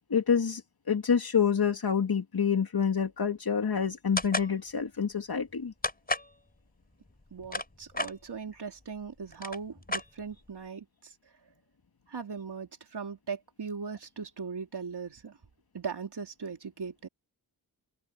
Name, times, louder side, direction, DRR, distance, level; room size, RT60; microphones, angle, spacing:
voice 1, 0.1-5.7, left 7 dB, 55° left, 2.6 m, -27 dB
sound 1, 4.2-4.5 5.8-6.3 7.2-8.1 9.0-9.1 9.3-10.5, left 2 dB, 20° left, 4.8 m, -32 dB
voice 2, 7.3-11.1 12.1-15.4 15.7-17.1, right 5 dB, 65° right, 3.7 m, -39 dB
open air
cardioid pair, 45°, 43 cm